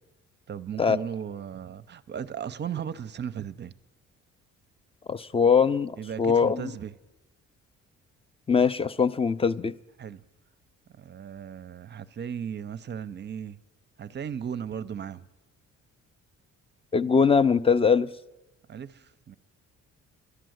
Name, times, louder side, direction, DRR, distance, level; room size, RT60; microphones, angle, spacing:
voice 1, 0.5-3.7 6.0-6.9 10.0-10.2 10.9-13.6 14.0-15.3 18.7-19.4, right 8 dB, 35° right, 0.5 m, -36 dB
voice 2, 5.1-5.9 6.2-6.6 8.5-9.7 16.9-18.1, left 6 dB, 20° left, 0.4 m, -21 dB
11.5 x 10.0 x 7.8 m
cardioid pair, 90°, 30 cm